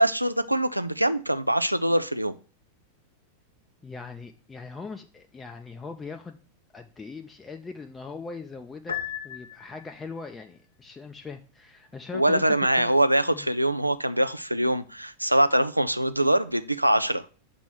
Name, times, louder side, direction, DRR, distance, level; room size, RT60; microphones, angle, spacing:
voice 1, 0.0-2.4 12.1-17.3, right 1 dB, 85° right, 0.3 m, -23 dB
voice 2, 3.8-6.4 6.7-9.0 9.2-12.4 12.7-13.0 13.3-13.5, left 4 dB, 15° left, 0.4 m, -40 dB
Piano, 8.9-10.1, left 9 dB, 75° left, 0.6 m, -35 dB
6.1 x 3.0 x 5.7 m
figure-of-eight pair, 90°, 0 cm